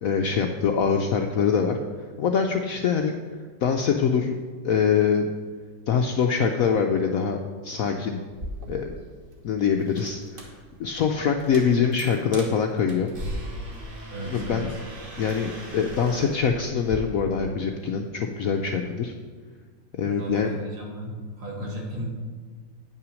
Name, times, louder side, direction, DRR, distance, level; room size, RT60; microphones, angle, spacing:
voice 1, 0.0-1.8 2.2-3.2 3.6-4.4 4.6-5.3 5.9-8.2 8.7-9.0 9.4-10.5 10.8-13.1 14.2-14.7 15.2-19.1 20.0-20.5, left 6 dB, 70° left, 3 dB, 0.8 m, -24 dB
sound 1, 8.3-17.0, equal, 30° right, 1.3 m, -39 dB
voice 2, 14.1-14.8 20.1-22.1, left 1 dB, 75° right, -2 dB, 2.6 m, -34 dB
9.2 x 5.8 x 6.2 m, 1.5 s
omnidirectional pair, 2.0 m